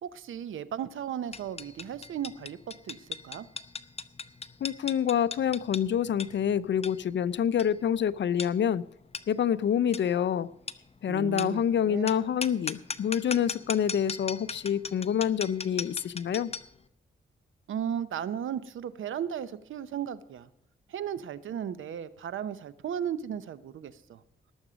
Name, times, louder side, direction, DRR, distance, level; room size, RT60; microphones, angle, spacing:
voice 1, 0.0-3.5 11.1-12.1 17.7-20.5 20.9-24.2, right 9 dB, 85° right, 0.8 m, -35 dB
sound 1, 1.3-16.8, left 4 dB, 30° left, 0.7 m, -40 dB
voice 2, 4.6-8.8 9.3-10.5 11.0-16.5, left 9 dB, 70° left, 0.6 m, -27 dB
19.0 x 7.2 x 5.1 m
cardioid pair, 75°, 20 cm